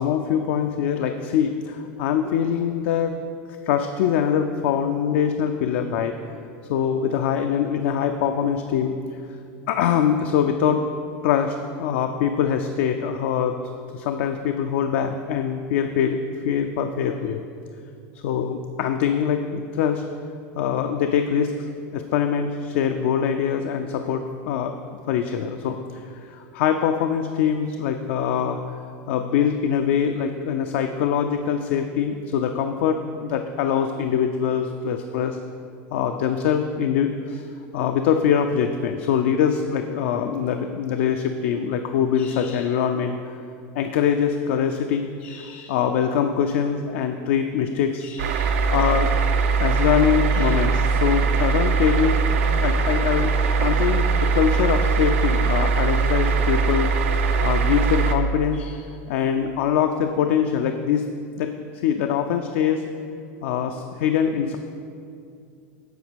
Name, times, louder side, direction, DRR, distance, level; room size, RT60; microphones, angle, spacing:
voice 1, 0.0-3.2 3.6-6.1 6.7-8.9 9.7-10.8 11.2-13.6 13.9-17.5 18.2-20.0 20.6-24.8 25.1-28.8 29.1-35.4 35.9-37.5 37.7-43.4 43.7-49.1 49.6-52.2 52.6-56.9 57.4-61.1 61.4-61.5 61.8-62.8 63.4-64.6, left 8 dB, 75° left, 6 dB, 0.4 m, -23 dB
sound 1, 48.2-58.2, right 4 dB, 90° right, 0.6 m, -21 dB
7.9 x 4.3 x 5.1 m, 2.5 s
supercardioid pair, 145°, 7 cm